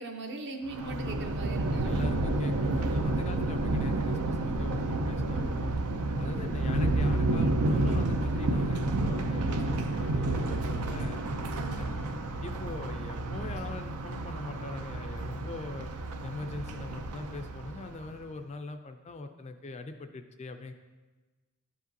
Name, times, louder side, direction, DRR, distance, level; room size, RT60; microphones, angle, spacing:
voice 1, 0.0-2.1 11.6-12.0, right 2 dB, 50° right, 4 dB, 0.7 m, -40 dB
Thunder, 0.7-18.1, right 2 dB, 85° right, 0.5 m, -30 dB
voice 2, 0.8-1.1 1.8-5.7 6.1-11.2 11.5-11.9 12.4-15.9 16.2-20.7, left 3 dB, 30° left, 7 dB, 0.3 m, -41 dB
Wind instrument woodwind instrument, 9.1-12.8, left 3 dB, 70° left, 0.6 m, -52 dB
11.5 x 5.0 x 2.7 m, 1.3 s
head